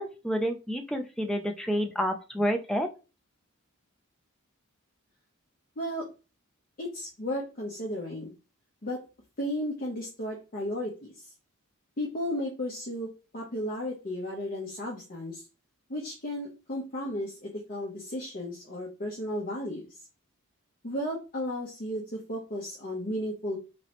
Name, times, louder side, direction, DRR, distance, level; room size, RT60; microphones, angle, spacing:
voice 1, 0.0-2.9, equal, ahead, 4 dB, 0.4 m, -29 dB
voice 2, 6.8-8.3 8.8-9.0 9.4-11.3 12.0-15.4 15.9-19.9 20.8-23.6, left 1 dB, 40° left, -3 dB, 0.8 m, -34 dB
3.1 x 2.9 x 3.0 m, 0.31 s
head